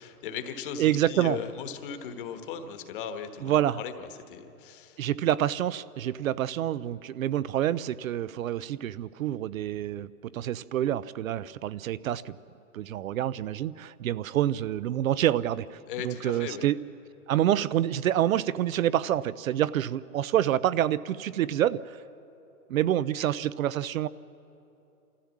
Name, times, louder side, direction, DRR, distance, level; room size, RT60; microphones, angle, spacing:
voice 1, 0.0-5.0 15.9-16.7, left 7 dB, 35° left, 7 dB, 1.3 m, -38 dB
voice 2, 0.8-1.4 3.4-3.8 5.0-10.1 10.3-12.4 12.7-15.8 16.0-16.8 17.3-22.0 22.7-24.1, right 12 dB, 65° right, 18 dB, 0.5 m, -27 dB
26.0 x 14.5 x 7.3 m, 2.8 s
hypercardioid pair, 165°, 44 cm